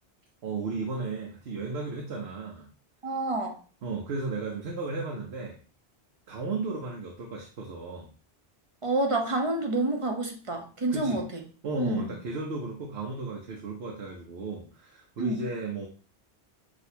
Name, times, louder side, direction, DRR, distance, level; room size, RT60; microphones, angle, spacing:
voice 1, 0.4-2.7 3.8-5.6 6.3-8.1 10.9-11.2 11.6-15.9, right 3 dB, 75° right, 0 dB, 1.0 m, -34 dB
voice 2, 3.0-3.6 8.8-11.4 11.8-12.1 15.2-15.4, right 2 dB, 35° right, 2 dB, 0.7 m, -28 dB
6.2 x 2.8 x 2.7 m, 0.38 s
omnidirectional pair, 1.1 m